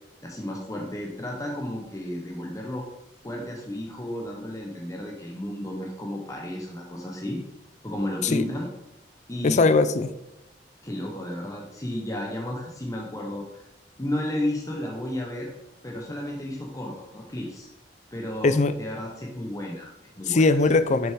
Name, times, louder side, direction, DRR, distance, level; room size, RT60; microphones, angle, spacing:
voice 1, 0.2-2.9 3.2-7.4 7.8-8.7 9.3-9.6 10.8-13.6 14.0-15.5 15.8-17.7 18.1-20.5, left 1 dB, 20° left, -1 dB, 0.9 m, -33 dB
voice 2, 9.4-10.1 18.4-18.8 20.3-21.1, left 3 dB, 40° left, 12 dB, 0.4 m, -20 dB
6.9 x 5.5 x 3.6 m, 0.90 s
head